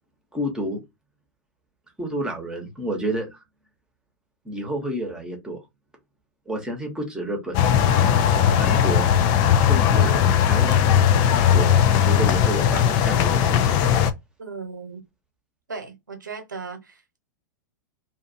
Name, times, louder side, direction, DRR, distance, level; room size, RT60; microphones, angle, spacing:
voice 1, 0.3-0.8 2.0-3.4 4.4-5.6 6.5-7.6 8.3-9.1 9.5-11.0 11.2-13.8, right 1 dB, 5° right, 1.1 m, -30 dB
sound 1, 7.5-14.1, left 9 dB, 45° left, 0.5 m, -18 dB
voice 2, 14.4-15.0 15.7-17.2, right 4 dB, 85° right, 1.1 m, -37 dB
2.7 x 2.4 x 2.6 m
hypercardioid pair, 100°, 10 cm